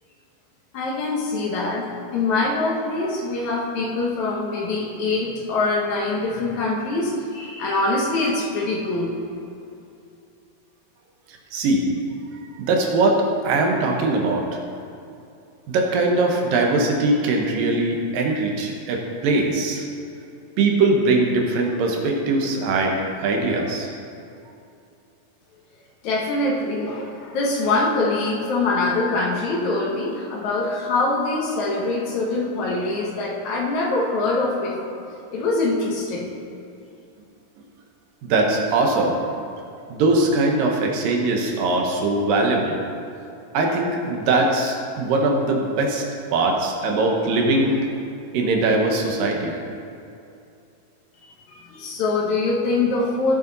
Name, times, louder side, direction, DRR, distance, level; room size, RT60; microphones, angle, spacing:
voice 1, 0.7-9.1 26.0-35.0 35.3-36.3 51.5-53.4, left 2 dB, 65° left, -2 dB, 2.3 m, -24 dB
voice 2, 11.5-11.9 12.6-13.2 13.4-14.6 15.7-19.9 20.6-23.0 23.2-23.9 38.2-39.2 39.9-42.8 43.5-46.0 46.3-47.8 48.3-49.5, right 2 dB, 75° right, 0 dB, 2.8 m, -21 dB
16.0 x 7.5 x 4.0 m, 2.6 s
omnidirectional pair, 4.0 m